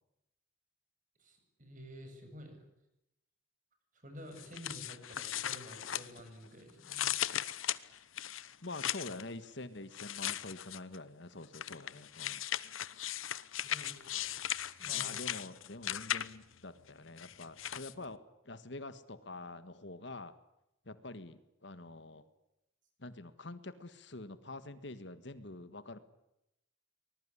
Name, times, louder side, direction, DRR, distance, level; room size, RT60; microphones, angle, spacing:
voice 1, 1.2-2.6 3.9-7.1 13.6-14.3 14.8-15.3, equal, 40° right, 5 dB, 7.7 m, -51 dB
sound 1, 4.4-6.5 6.8-9.2 9.9-11.0 11.5-16.5 17.2-17.9, left 11 dB, 85° left, 1.0 m, -38 dB
voice 2, 8.4-12.4 14.9-20.4 20.8-22.3 23.0-26.0, left 2 dB, 60° left, 13 dB, 1.6 m, -46 dB
24.5 x 21.0 x 10.0 m, 0.86 s
head